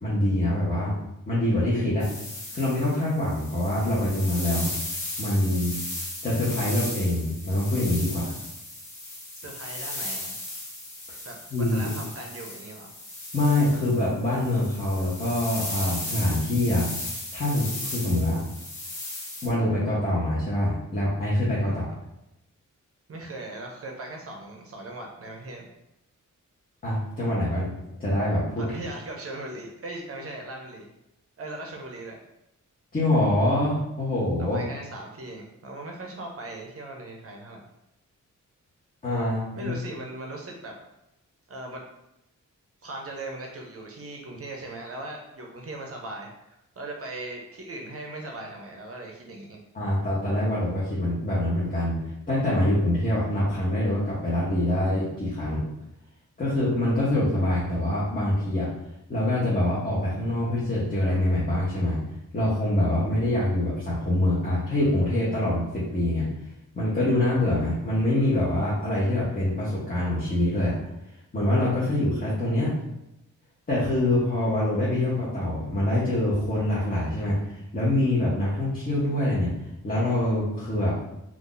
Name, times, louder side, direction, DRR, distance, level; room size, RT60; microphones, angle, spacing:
voice 1, 0.0-0.9 1.3-2.1 2.5-4.7 5.2-5.7 6.2-8.3 11.5-11.9 13.3-16.9 17.3-18.4 19.4-21.8 26.8-27.7 28.0-28.6 32.9-34.6 39.0-39.7 49.7-52.0 52.3-55.6 56.4-58.7 59.1-62.0 62.3-66.3 66.8-70.7 71.3-72.7 73.7-79.5 79.8-80.9, left 1 dB, 30° left, -9 dB, 0.8 m, -25 dB
sound 1, 2.0-19.5, left 2 dB, 60° left, 1.0 m, -36 dB
voice 2, 9.4-10.3 11.2-12.9 21.6-22.0 23.1-25.7 28.6-30.9 31.4-32.2 34.4-37.6 39.5-40.8 41.5-41.8 42.8-49.6, right 2 dB, 45° right, 1 dB, 0.6 m, -39 dB
2.6 x 2.4 x 3.8 m, 0.88 s
wide cardioid pair, 155°, 31 cm